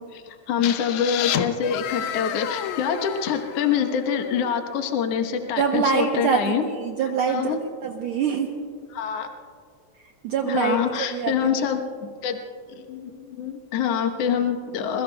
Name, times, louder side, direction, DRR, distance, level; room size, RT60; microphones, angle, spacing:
voice 1, 0.1-6.6 7.3-7.6 8.9-9.3 10.4-12.4 12.8-15.0, left 7 dB, 60° left, 5 dB, 2.0 m, -25 dB
sound 1, 0.6-4.4, left 10 dB, 80° left, 2.0 m, -30 dB
voice 2, 5.6-8.7 10.0-11.4, right 6 dB, 75° right, 3 dB, 1.2 m, -25 dB
26.5 x 22.5 x 2.3 m, 2.2 s
omnidirectional pair, 3.4 m